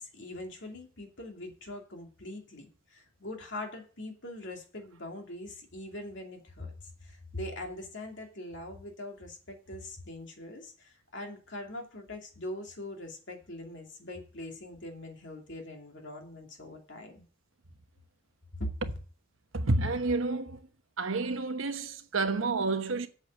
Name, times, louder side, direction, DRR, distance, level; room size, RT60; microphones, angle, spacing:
voice 1, 0.0-17.2 18.5-18.8, left 1 dB, 60° left, 2.7 m, -42 dB
voice 2, 19.5-20.6 21.0-23.1, right 3 dB, 75° right, 1.1 m, -29 dB
8.1 x 7.9 x 6.5 m
head